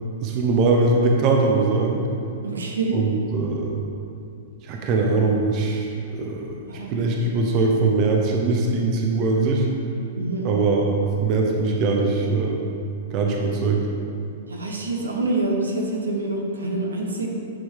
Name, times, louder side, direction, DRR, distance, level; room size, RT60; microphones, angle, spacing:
voice 1, 0.2-2.0 2.9-3.7 4.6-6.5 6.9-9.7 10.4-12.6 13.1-13.8, right 3 dB, 40° right, 0 dB, 1.0 m, -21 dB
voice 2, 2.4-3.0 6.7-6.9 10.2-10.5 14.5-17.3, right 2 dB, 75° right, 0 dB, 1.1 m, -26 dB
9.4 x 6.3 x 3.6 m, 2.6 s
figure-of-eight pair, 105°, 0 cm